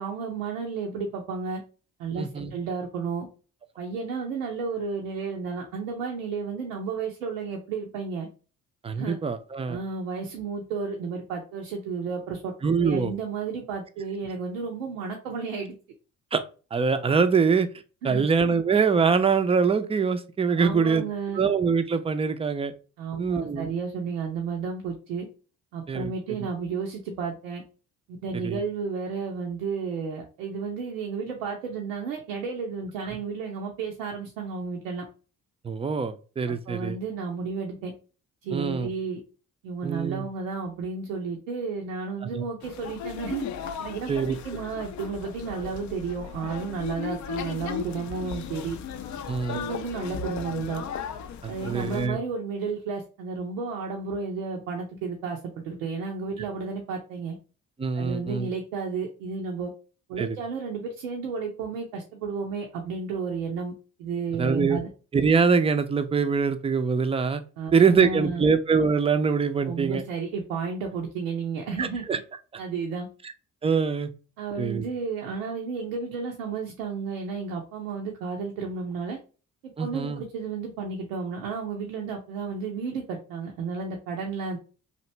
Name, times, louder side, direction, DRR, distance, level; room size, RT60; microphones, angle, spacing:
voice 1, 0.0-1.6 2.0-3.3 3.8-8.3 9.0-9.2 9.7-12.5 12.8-15.7 18.0-18.3 20.5-21.4 23.0-25.3 25.7-27.6 28.2-35.0 36.5-37.9 38.4-39.2 39.6-43.5 43.8-48.8 49.5-50.8 51.5-57.4 57.9-59.7 60.1-63.7 64.0-64.9 67.6-68.5 69.6-72.0 72.6-73.1 74.4-79.2 79.8-84.6, right 5 dB, 85° right, 1 dB, 0.6 m, -32 dB
voice 2, 2.2-2.5 8.8-9.8 12.6-13.1 16.3-16.4 16.7-17.7 18.0-21.0 21.3-22.7 23.2-23.7 25.9-26.1 28.4-28.6 35.6-37.0 38.5-38.9 39.8-40.3 42.2-42.4 44.1-44.4 49.3-49.6 51.4-52.2 57.8-58.5 60.2-60.4 64.4-64.8 65.1-67.4 67.7-70.0 71.8-72.2 73.6-74.1 74.6-74.8 79.8-80.2, right 5 dB, 15° right, 10 dB, 0.4 m, -24 dB
sound 1, 42.6-52.1, left 7 dB, 50° left, 0.5 m, -36 dB
2.9 x 2.5 x 3.1 m, 0.35 s
hypercardioid pair, 45°, 39 cm